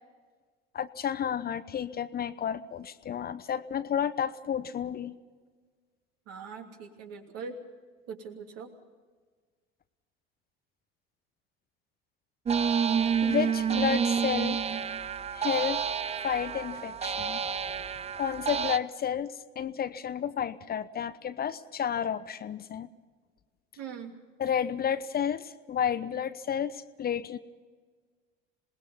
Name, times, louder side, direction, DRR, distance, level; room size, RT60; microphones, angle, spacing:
voice 1, 0.7-5.1 13.2-14.6 15.3-15.8 16.2-17.4 18.2-22.9 24.4-27.4, left 8 dB, 30° left, 13 dB, 0.8 m, -31 dB
voice 2, 6.3-7.6 8.1-8.7 23.8-24.1, right 5 dB, 55° right, 3 dB, 3.0 m, -41 dB
sound 1, 12.5-18.8, right 7 dB, 20° right, 0.7 m, -29 dB
26.5 x 20.0 x 5.6 m, 1.5 s
figure-of-eight pair, 60°, 30 cm